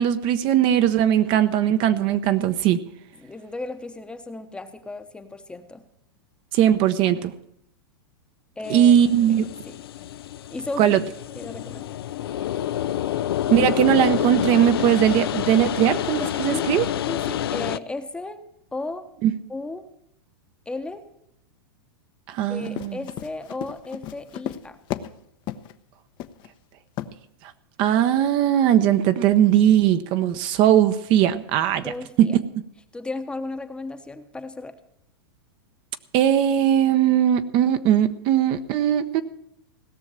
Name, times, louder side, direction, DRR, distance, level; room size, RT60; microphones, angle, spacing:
voice 1, 0.0-2.8 6.5-7.3 8.7-9.5 10.8-11.0 13.5-16.9 19.2-19.4 22.3-23.0 27.8-31.9 32.2-32.4 36.1-39.2, right 10 dB, 40° right, 10 dB, 0.8 m, -19 dB
voice 2, 3.2-5.8 8.6-9.0 9.3-9.8 10.5-10.9 11.3-11.9 16.5-16.7 17.1-18.4 18.7-19.1 19.5-19.9 20.7-21.0 22.5-24.8 31.8-32.4 32.9-34.8, left 2 dB, 10° left, 8 dB, 0.9 m, -34 dB
sound 1, 8.6-17.8, left 12 dB, 75° left, 0.5 m, -28 dB
Run, 22.5-25.2 25.5-25.7 26.2-26.5 27.0-27.1, left 12 dB, 35° left, 0.7 m, -33 dB
17.0 x 6.4 x 8.7 m, 0.75 s
hypercardioid pair, 125°, 13 cm